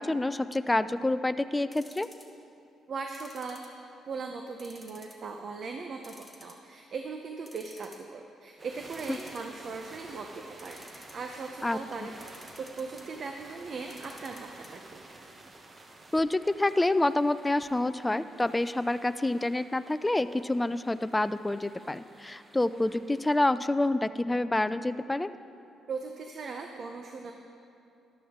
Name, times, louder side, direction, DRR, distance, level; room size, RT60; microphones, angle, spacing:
voice 1, 0.0-2.1 9.1-9.2 11.6-11.8 16.1-25.3, left 2 dB, 15° left, 13 dB, 0.4 m, -27 dB
sound 1, 1.7-2.4 3.1-4.1 4.6-5.3 5.6-5.7 6.0-6.9 7.2-7.3 7.5-8.1 8.9-9.8 10.5-11.3 12.2-13.1 13.8-14.7 15.0-15.1 15.3-15.4, equal, 10° right, 1.5 m, -52 dB
voice 2, 2.9-3.6 4.1-15.0 25.9-27.3, right 4 dB, 50° right, 4 dB, 0.7 m, -39 dB
sound 2, 8.6-23.4, right 2 dB, 35° right, 1.0 m, -51 dB
13.0 x 11.5 x 3.7 m, 2.6 s
cardioid pair, 90°, 0 cm